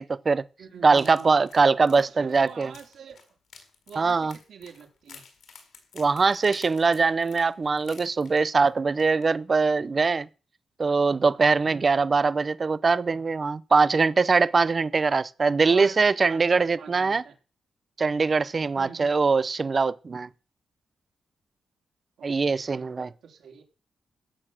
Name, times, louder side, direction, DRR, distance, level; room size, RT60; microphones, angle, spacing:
voice 1, 0.0-0.4 0.8-2.7 4.0-4.3 6.0-10.3 10.8-17.2 18.0-20.3 22.2-23.1, right 4 dB, 30° right, 0.6 m, -22 dB
voice 2, 0.6-1.3 1.9-3.2 3.9-5.2 11.7-11.9 15.7-17.4 18.8-19.2 22.2-22.9 23.2-23.6, right 7 dB, 70° right, 4.0 m, -45 dB
sound 1, 0.9-8.7 9.0-9.2 9.6-9.7, left 6 dB, 75° left, 5.0 m, -51 dB
16.0 x 7.1 x 7.4 m
wide cardioid pair, 170°, 0 cm